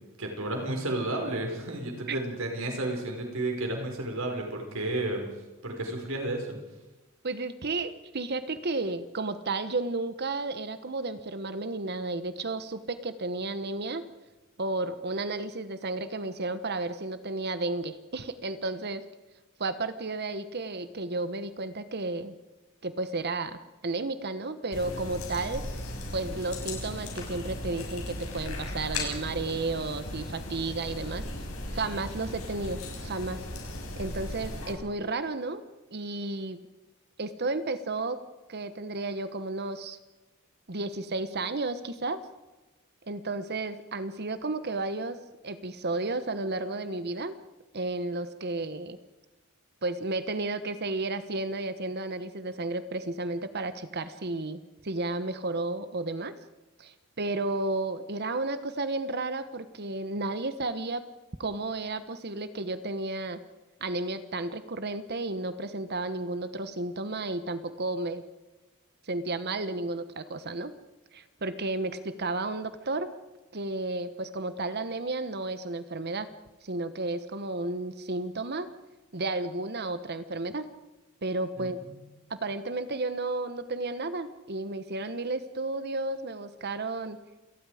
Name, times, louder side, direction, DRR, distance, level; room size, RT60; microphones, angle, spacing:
voice 1, 0.2-5.2 5.6-6.6 81.6-81.9 82.2-82.3, right 1 dB, 70° right, 2 dB, 5.2 m, -32 dB
voice 2, 7.2-14.0 14.6-19.0 19.6-22.3 22.8-25.6 26.1-31.3 31.7-33.4 34.0-35.6 35.9-36.6 37.2-38.2 38.5-40.0 40.7-42.2 43.0-45.2 45.4-47.3 47.7-49.0 49.8-56.3 56.8-61.0 61.4-63.4 63.8-68.2 69.0-70.7 71.1-73.1 73.5-76.3 76.6-78.7 79.1-80.7 81.2-81.8 82.3-87.2, right 2 dB, 50° right, 12 dB, 1.1 m, -32 dB
sound 1, 24.7-34.7, left 1 dB, 75° left, 6.3 m, -37 dB
28.0 x 19.0 x 5.0 m, 1.1 s
head